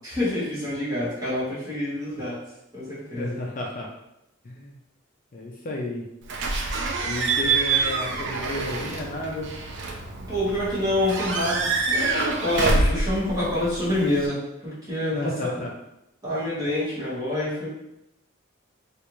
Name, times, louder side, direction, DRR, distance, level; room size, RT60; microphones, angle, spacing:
voice 1, 0.0-2.4 2.7-3.4 10.3-15.5 16.2-17.7, left 1 dB, 20° right, -9 dB, 1.4 m, -27 dB
voice 2, 3.2-3.9 4.4-4.7 5.3-6.0 7.0-9.5 15.1-15.7, left 1 dB, 45° left, -1 dB, 0.5 m, -32 dB
Slam / Squeak / Alarm, 6.3-14.3, right 3 dB, 65° right, 0.4 m, -26 dB
3.3 x 2.5 x 3.0 m, 0.85 s
head